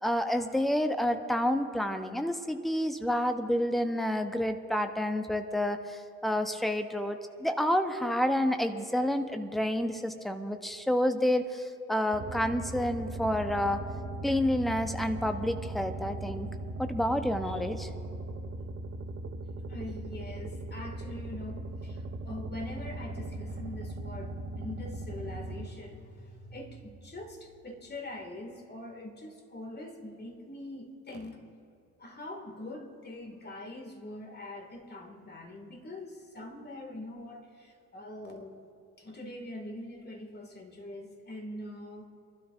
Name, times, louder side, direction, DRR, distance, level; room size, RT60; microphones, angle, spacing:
voice 1, 0.0-13.8 14.2-16.5 16.8-17.9, left 1 dB, ahead, 7 dB, 1.0 m, -29 dB
sound 1, 12.1-25.7, right 2 dB, 30° right, 1.1 m, -39 dB
voice 2, 19.7-31.4 32.0-38.6 39.0-42.1, left 1 dB, 25° left, 3 dB, 2.4 m, -43 dB
27.0 x 12.0 x 2.7 m, 2.5 s
figure-of-eight pair, 60°, 43 cm